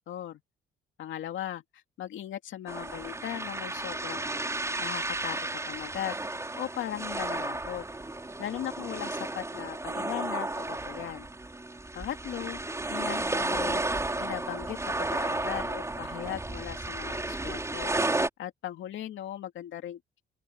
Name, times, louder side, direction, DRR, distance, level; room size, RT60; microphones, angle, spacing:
voice 1, 0.1-0.4 1.0-4.2 4.8-5.4 5.7-6.1 6.6-7.8 8.4-11.3 11.9-13.8 14.2-18.0 18.4-20.0, left 11 dB, 75° left, 2.5 m, -38 dB
sound 1, 2.7-18.3, right 2 dB, 15° right, 4.6 m, -33 dB
open air
cardioid pair, 90°, 20 cm